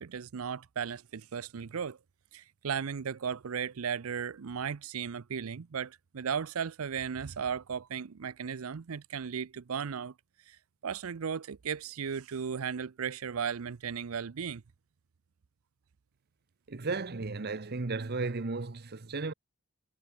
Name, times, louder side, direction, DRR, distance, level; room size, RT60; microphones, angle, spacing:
voice 1, 0.0-2.0 2.3-10.1 10.5-14.6, right 7 dB, 85° right, 0.6 m, -36 dB
voice 2, 16.7-19.3, right 3 dB, 50° right, 0.9 m, -34 dB
head